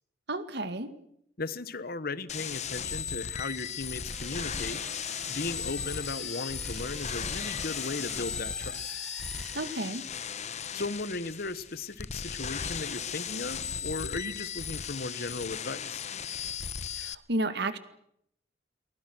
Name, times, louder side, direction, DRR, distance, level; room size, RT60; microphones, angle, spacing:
voice 1, 0.3-0.9 9.5-10.0 16.9-17.8, right 2 dB, 65° right, 11 dB, 2.1 m, -32 dB
voice 2, 1.4-8.9 10.5-16.0, left 3 dB, 55° left, 15 dB, 1.3 m, -37 dB
sound 1, 2.3-17.2, left 7 dB, 40° left, 0.9 m, -36 dB
sound 2, 4.1-10.3, equal, 5° left, 5.8 m, -46 dB
29.5 x 23.0 x 6.3 m, 0.75 s
head